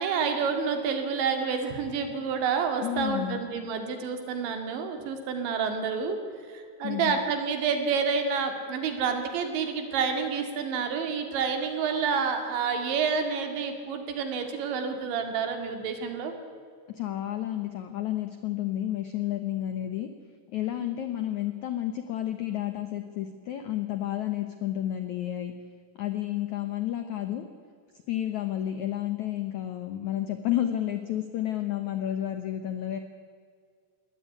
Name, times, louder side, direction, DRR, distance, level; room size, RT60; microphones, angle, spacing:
voice 1, 0.0-6.2 6.5-16.3, right 5 dB, 85° right, 6 dB, 4.6 m, -29 dB
voice 2, 2.8-3.4 6.8-7.2 16.9-20.1 20.5-25.5 26.0-27.5 28.1-33.0, left 12 dB, 80° left, 8 dB, 1.6 m, -31 dB
21.5 x 17.5 x 9.7 m, 2.2 s
omnidirectional pair, 5.1 m